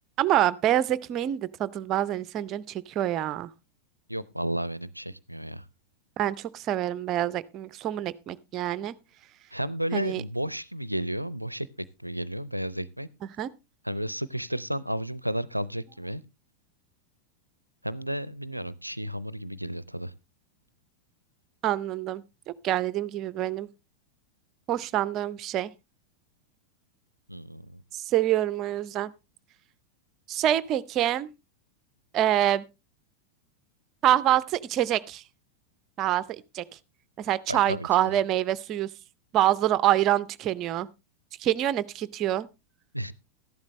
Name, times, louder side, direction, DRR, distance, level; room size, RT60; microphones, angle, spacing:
voice 1, 0.2-3.5 6.2-8.9 9.9-10.2 13.4-13.5 21.6-22.2 22.6-23.7 24.7-25.7 27.9-29.1 30.3-31.3 32.1-32.6 34.0-35.2 36.0-36.2 36.5-36.6 37.2-38.9 39.3-40.9 41.4-42.5, right 12 dB, 35° right, 0.6 m, -26 dB
voice 2, 4.1-5.7 9.5-11.7 12.0-13.1 13.8-16.2 17.8-20.1 27.3-27.8 37.5-38.1 42.9-43.1, equal, 90° right, 0.5 m, -32 dB
13.0 x 11.5 x 3.2 m
figure-of-eight pair, 90°, 0 cm